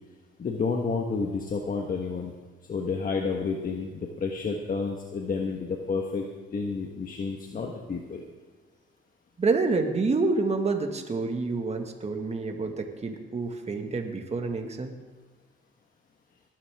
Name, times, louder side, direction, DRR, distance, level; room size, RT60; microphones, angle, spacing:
voice 1, 0.4-2.3 2.7-6.2 6.5-8.2, left 4 dB, 45° left, 1 dB, 1.5 m, -30 dB
voice 2, 9.4-15.0, right 3 dB, 35° right, 4 dB, 1.9 m, -28 dB
20.0 x 11.5 x 3.7 m, 1.4 s
cardioid pair, 90°, 20 cm